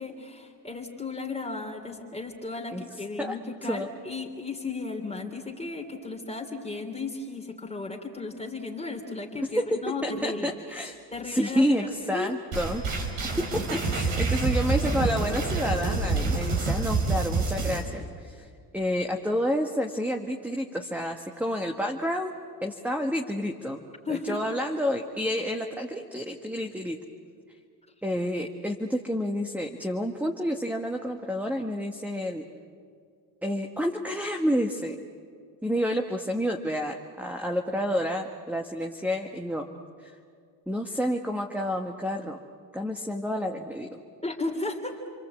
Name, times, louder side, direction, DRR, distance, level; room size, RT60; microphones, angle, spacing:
voice 1, 0.0-10.8 11.1-12.3 24.0-24.4 44.2-45.1, left 3 dB, 15° left, 0 dB, 3.2 m, -35 dB
voice 2, 3.2-3.9 9.5-11.0 11.2-12.8 13.4-18.5 18.7-22.3 22.6-27.0 28.0-32.4 33.4-35.0 35.6-39.7 40.0-40.1 40.7-42.4 42.7-44.0, equal, 5° right, 3 dB, 1.6 m, -29 dB
sound 1, 12.5-17.8, right 3 dB, 75° right, 5.6 m, -27 dB
29.5 x 23.0 x 8.4 m, 2.2 s
cardioid pair, 90°, 45 cm